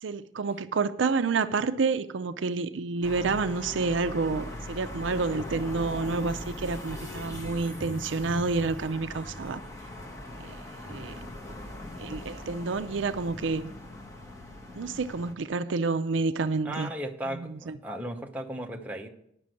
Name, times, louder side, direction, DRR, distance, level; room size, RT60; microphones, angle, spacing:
voice 1, 0.0-9.6 10.4-10.6 10.9-11.2 12.0-13.7 14.8-16.9 17.3-17.8, right 4 dB, 85° right, 11 dB, 0.5 m, -29 dB
sound 1, 3.0-15.3, left 1 dB, 15° left, 1.5 m, -40 dB
voice 2, 16.6-19.1, right 1 dB, 10° right, 1 dB, 0.8 m, -36 dB
9.6 x 6.1 x 7.6 m, 0.73 s
head